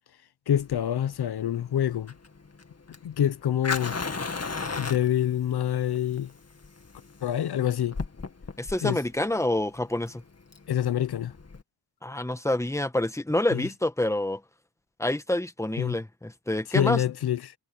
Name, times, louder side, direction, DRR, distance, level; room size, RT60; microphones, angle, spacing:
voice 1, 0.5-2.1 3.0-4.0 4.8-6.3 7.2-8.0 8.8-9.0 10.7-11.3 13.5-13.6 15.8-16.0 16.7-17.5, left 10 dB, 85° left, 0.7 m, -26 dB
Fire, 0.6-11.6, left 4 dB, 40° left, 2.1 m, -36 dB
voice 2, 8.6-10.2 12.0-14.4 15.0-17.0, left 1 dB, 10° left, 1.4 m, -27 dB
cardioid pair, 65°, 38 cm